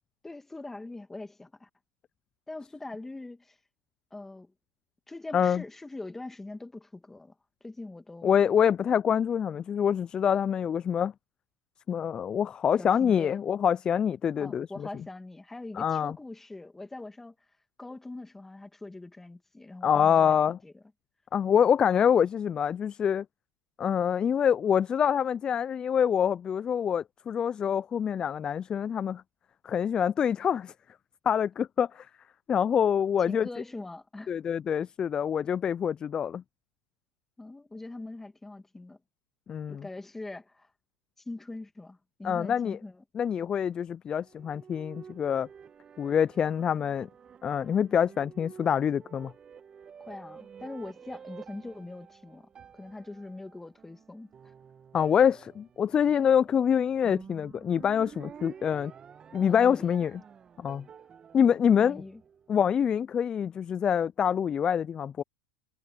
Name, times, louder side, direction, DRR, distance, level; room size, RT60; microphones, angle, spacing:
voice 1, 0.2-1.7 2.5-3.6 4.1-4.5 5.1-7.3 7.6-8.4 12.8-13.4 14.4-17.3 17.8-20.7 33.2-34.3 37.4-39.0 39.7-40.7 41.3-43.0 50.0-52.5 52.7-54.3 59.4-60.0 61.8-62.2, left 2 dB, 10° left, 2.2 m, -42 dB
voice 2, 8.2-11.1 11.9-14.9 15.8-16.2 19.8-20.6 21.3-23.2 23.8-29.2 29.6-30.7 31.3-32.1 32.5-33.5 34.3-36.4 39.5-39.8 42.2-42.8 43.2-45.5 46.0-47.1 47.4-49.3 54.9-58.9 59.3-60.2 60.6-60.8 61.3-62.0 62.5-65.2, left 8 dB, 25° left, 0.3 m, -26 dB
sound 1, 44.1-62.7, right 7 dB, 25° right, 1.5 m, -50 dB
hypercardioid pair, 110°, 3 cm